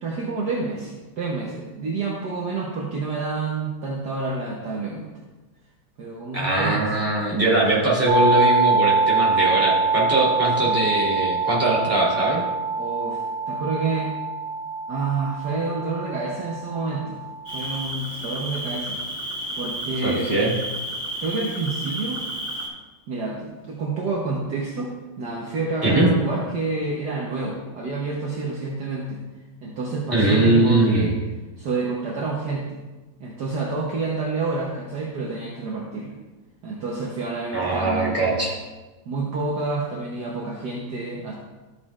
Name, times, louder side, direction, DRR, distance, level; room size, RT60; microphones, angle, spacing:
voice 1, 0.0-5.2 6.0-7.1 10.6-10.7 12.8-14.1 14.9-17.2 17.5-19.0 19.5-20.4 21.2-22.3 23.1-29.2 29.6-31.1 31.6-32.8 33.2-36.1 36.6-38.5 39.1-41.3, right 3 dB, 60° right, -3 dB, 1.5 m, -28 dB
voice 2, 6.3-12.4 20.0-20.5 25.8-26.1 30.1-31.1 37.5-38.5, right 2 dB, 5° right, -7 dB, 2.8 m, -21 dB
sound 1, 8.1-17.8, right 3 dB, 35° right, 2.2 m, -24 dB
Cricket, 17.5-22.7, right 1 dB, 70° left, 3.5 m, -32 dB
13.0 x 7.5 x 2.4 m, 1.2 s
omnidirectional pair, 2.1 m